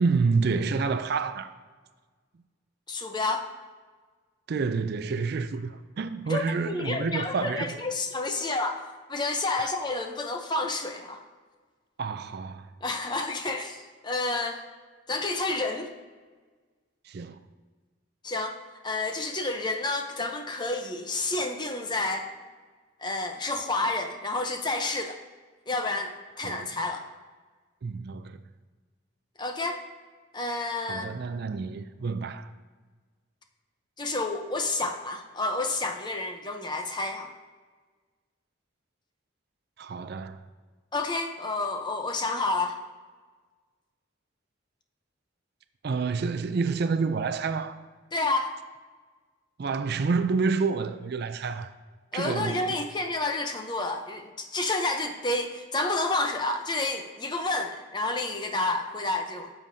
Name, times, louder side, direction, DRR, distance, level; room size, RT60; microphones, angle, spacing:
voice 1, 0.0-1.5 4.5-7.8 9.6-9.7 12.0-12.7 17.1-17.4 26.4-26.7 27.8-28.4 30.9-32.5 39.8-40.4 45.8-47.8 49.6-51.7 52.1-52.8, right 4 dB, 50° right, 0.4 m, -28 dB
voice 2, 2.9-3.5 6.3-8.8 9.1-11.2 12.8-14.6 15.1-15.9 18.2-18.6 18.8-22.3 23.0-25.2 25.7-27.0 29.4-29.8 30.3-31.1 34.0-37.3 40.9-42.8 48.1-48.5 52.1-59.5, left 2 dB, 20° left, 0.6 m, -30 dB
12.0 x 7.1 x 2.7 m
head